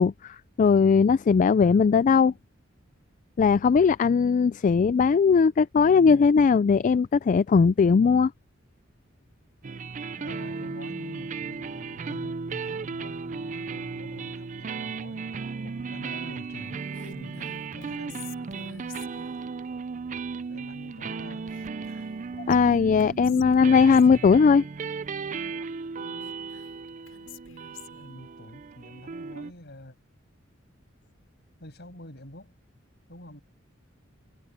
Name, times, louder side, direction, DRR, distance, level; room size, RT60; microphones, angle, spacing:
voice 1, 0.0-2.3 3.4-8.3 22.5-24.6, left 5 dB, 40° left, 0.3 m, -19 dB
voice 2, 1.5-2.0 5.9-6.2 10.2-16.9 17.1-18.8 20.5-21.5 22.9-23.6 28.0-30.0 31.6-32.5 33.1-33.4, left 1 dB, 55° left, 7.4 m, -46 dB
sound 1, 9.6-29.5, right 4 dB, 40° right, 0.5 m, -36 dB
Whispering, 16.6-19.4 21.5-22.2 22.5-22.6 23.0-24.1 25.9-28.1, left 7 dB, 85° left, 7.9 m, -48 dB
head